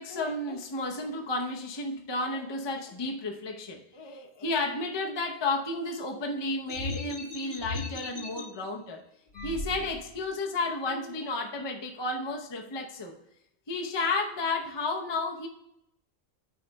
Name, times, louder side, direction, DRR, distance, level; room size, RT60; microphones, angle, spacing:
voice 1, 0.0-9.0 9.4-13.1 13.7-15.5, left 2 dB, 25° left, 2 dB, 0.7 m, -32 dB
sound 1, 6.7-8.4 9.3-10.3, left 3 dB, 65° left, 1.9 m, -37 dB
9.4 x 3.3 x 5.2 m, 0.77 s
omnidirectional pair, 1.1 m